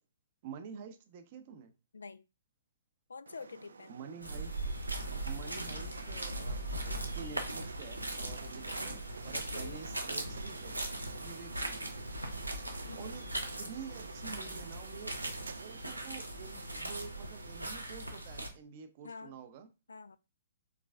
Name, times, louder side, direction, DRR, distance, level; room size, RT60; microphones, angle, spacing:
voice 1, 0.4-1.7 3.9-4.7 5.3-8.9 9.2-10.8 11.2-11.9 13.0-15.2 15.5-19.7, right 6 dB, 40° right, 0.7 m, -48 dB
voice 2, 1.9-2.2 3.1-4.0 9.3-9.8 12.9-13.3 19.0-19.4 19.9-20.2, left 4 dB, 70° left, 0.3 m, -47 dB
sound 1, 3.3-17.7, right 5 dB, 70° right, 0.3 m, -50 dB
sound 2, 4.2-18.5, right 1 dB, 90° right, 0.8 m, -39 dB
4.8 x 3.9 x 2.4 m
figure-of-eight pair, 120°, 0 cm